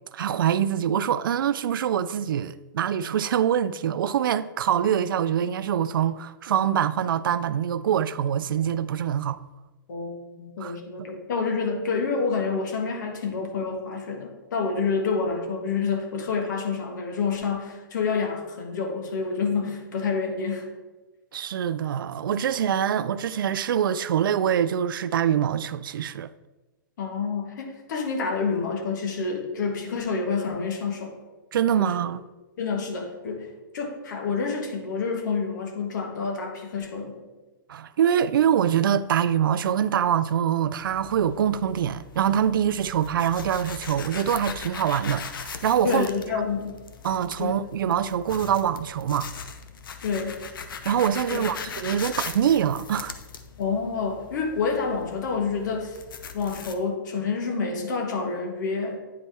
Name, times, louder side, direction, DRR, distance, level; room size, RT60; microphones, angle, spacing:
voice 1, 0.1-9.4 10.6-11.1 21.3-26.3 31.5-32.2 37.7-46.0 47.0-49.3 50.9-53.2, right 9 dB, 80° right, 0.4 m, -24 dB
voice 2, 9.9-20.7 27.0-31.1 31.8-32.1 32.6-37.2 45.8-46.7 47.4-47.5 50.0-50.4 51.3-51.5 53.6-56.0 56.3-59.0, left 5 dB, 60° left, 1.4 m, -28 dB
sound 1, 40.8-56.7, left 6 dB, 85° left, 0.7 m, -40 dB
9.6 x 4.2 x 3.4 m
hypercardioid pair, 165°, 11 cm